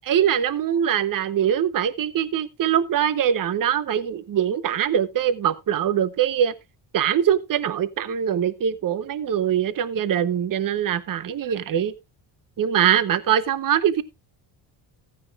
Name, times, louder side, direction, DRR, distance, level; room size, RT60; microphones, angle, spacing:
voice 1, 0.0-6.5 6.9-11.9 12.6-14.0, right 9 dB, 45° right, 0.9 m, -22 dB
15.5 x 9.5 x 2.4 m
cardioid pair, 95°, 44 cm